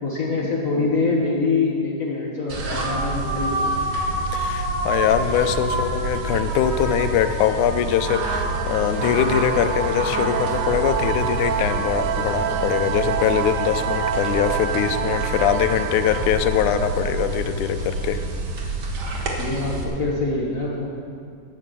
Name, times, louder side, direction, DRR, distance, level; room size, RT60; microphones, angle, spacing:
voice 1, 0.0-3.7 19.4-20.9, left 3 dB, 70° left, -3 dB, 0.8 m, -24 dB
sound 1, 2.5-19.8, right 2 dB, 55° right, 1.8 m, -27 dB
voice 2, 4.3-18.2, left 10 dB, 90° left, 9 dB, 2.1 m, -22 dB
sound 2, 7.9-18.3, right 9 dB, 90° right, 2.1 m, -28 dB
10.5 x 9.5 x 6.8 m, 2.3 s
omnidirectional pair, 3.4 m